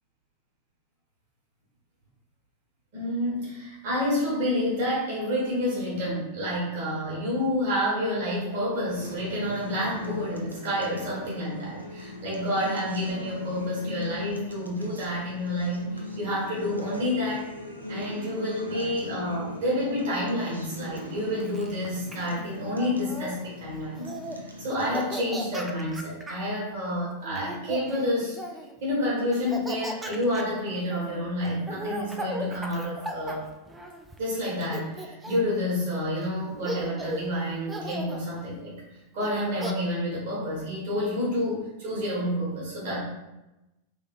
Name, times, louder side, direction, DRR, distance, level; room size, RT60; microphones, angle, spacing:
voice 1, 2.9-17.5 17.9-28.4 28.8-33.4 34.2-38.7 39.1-43.0, left 1 dB, 55° right, -6 dB, 1.2 m, -29 dB
sound 1, 8.0-24.7, left 3 dB, 40° left, 1.2 m, -46 dB
Acoustic guitar, 9.0-25.0, left 1 dB, 85° right, 0.4 m, -41 dB
Laughter, 21.0-23.4 23.9-24.4 24.7-26.5 27.2-28.7 29.3-34.2 34.6-35.6 36.2-36.3 36.6-37.3 37.7-38.2 39.2-39.7, right 1 dB, 10° right, 0.3 m, -37 dB
3.0 x 2.8 x 2.4 m, 0.95 s
figure-of-eight pair, 90°, 0 cm